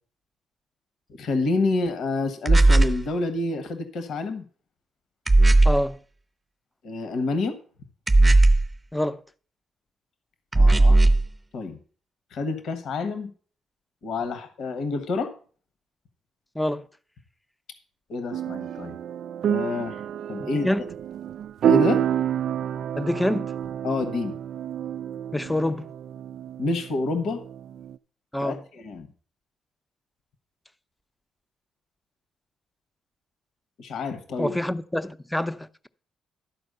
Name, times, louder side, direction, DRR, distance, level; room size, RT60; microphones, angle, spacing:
voice 1, 1.2-4.4 6.8-7.6 10.5-11.0 11.5-11.8 12.3-13.3 14.0-15.3 18.1-18.9 19.4-20.0 20.3-20.7 21.7-22.0 23.8-24.3 26.6-27.4 28.4-29.1 33.8-34.6, left 3 dB, 75° left, 1.2 m, -28 dB
sound 1, 2.5-3.0 5.3-5.9 8.1-8.7 10.5-11.3, right 2 dB, 20° right, 0.9 m, -16 dB
voice 2, 5.6-6.0 8.9-9.2 16.5-16.9 20.4-20.9 23.0-23.5 25.3-25.9 28.3-28.6 34.4-35.9, left 1 dB, 5° left, 0.6 m, -26 dB
sound 2, 18.3-28.0, right 10 dB, 70° right, 0.3 m, -28 dB
12.0 x 4.5 x 6.6 m
cardioid pair, 90°, 0 cm